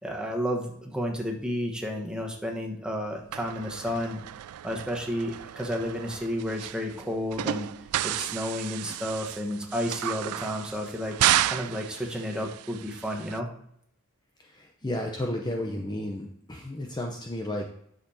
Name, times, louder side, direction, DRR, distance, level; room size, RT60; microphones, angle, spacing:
voice 1, 0.0-4.2 4.6-7.7 8.0-11.2 11.5-13.5, equal, 5° right, 0 dB, 1.2 m, -31 dB
sound 1, 3.3-13.4, right 13 dB, 90° right, 0.3 m, -32 dB
voice 2, 14.4-17.7, left 1 dB, 20° left, 2 dB, 0.7 m, -33 dB
10.5 x 6.8 x 2.8 m, 0.70 s
head